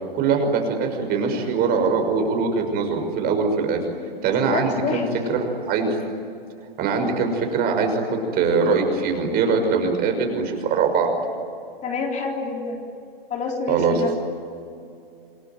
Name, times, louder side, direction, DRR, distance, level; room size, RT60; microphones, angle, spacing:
voice 1, 0.1-3.8 4.2-5.0 5.3-6.0 6.8-11.1 13.7-14.2, right 5 dB, 30° right, 4 dB, 6.0 m, -22 dB
voice 2, 4.3-5.1 11.8-12.8 13.3-14.2, left 4 dB, 25° left, 1 dB, 3.8 m, -28 dB
28.0 x 20.5 x 9.5 m, 2.5 s
hypercardioid pair, 120°, 30 cm